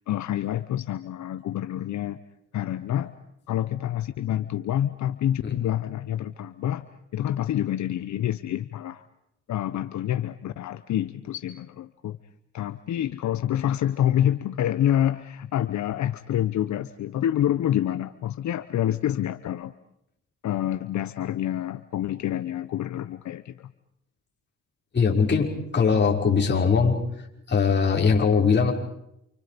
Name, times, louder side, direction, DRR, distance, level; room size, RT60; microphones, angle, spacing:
voice 1, 0.1-2.2 2.5-3.1 3.5-6.9 7.1-9.0 9.5-12.2 12.5-19.7 20.4-23.7, left 11 dB, 70° left, 12 dB, 1.0 m, -27 dB
voice 2, 24.9-25.5 25.7-26.9 27.5-28.7, left 5 dB, 35° left, -1 dB, 6.2 m, -20 dB
29.0 x 29.0 x 5.3 m, 0.80 s
cardioid pair, 90°, 30 cm